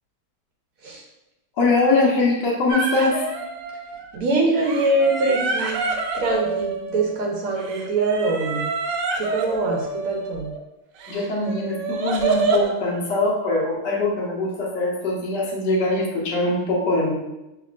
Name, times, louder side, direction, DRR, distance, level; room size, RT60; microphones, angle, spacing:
voice 1, 1.6-3.2 11.1-17.1, left 2 dB, 75° left, -2 dB, 1.5 m, -22 dB
sound 1, 2.7-4.2 4.6-7.2 7.6-10.6 11.0-12.7, right 3 dB, 85° right, 1.2 m, -27 dB
voice 2, 4.1-5.9 6.1-8.7 9.2-10.5, right 2 dB, 65° right, -1 dB, 1.0 m, -23 dB
5.6 x 3.0 x 2.5 m, 0.95 s
omnidirectional pair, 1.8 m